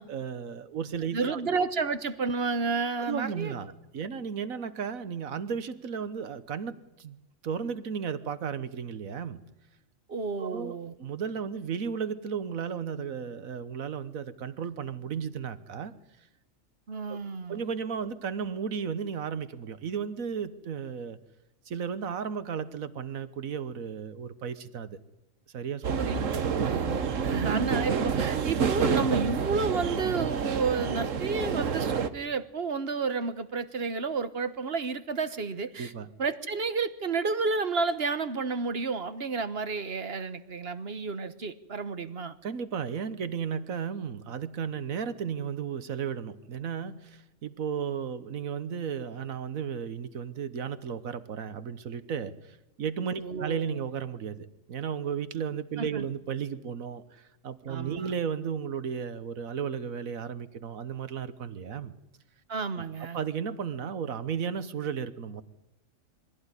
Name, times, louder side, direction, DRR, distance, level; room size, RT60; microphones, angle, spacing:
voice 1, 0.1-1.4 3.0-7.2 7.4-9.4 10.4-15.9 17.1-17.2 17.5-21.2 21.7-25.0 25.5-26.6 35.8-36.1 42.4-61.9 62.7-62.9 63.1-65.4, right 7 dB, 85° right, 13 dB, 1.6 m, -34 dB
voice 2, 1.1-3.6 10.1-10.9 16.9-17.6 26.0-26.2 26.6-35.9 36.2-42.3 53.2-53.8 55.8-56.1 57.7-58.1 62.5-63.2, right 4 dB, 50° right, 12 dB, 1.3 m, -31 dB
sound 1, 25.8-32.1, right 6 dB, 70° right, 1.5 m, -28 dB
23.0 x 16.0 x 9.8 m, 1.0 s
omnidirectional pair, 1.4 m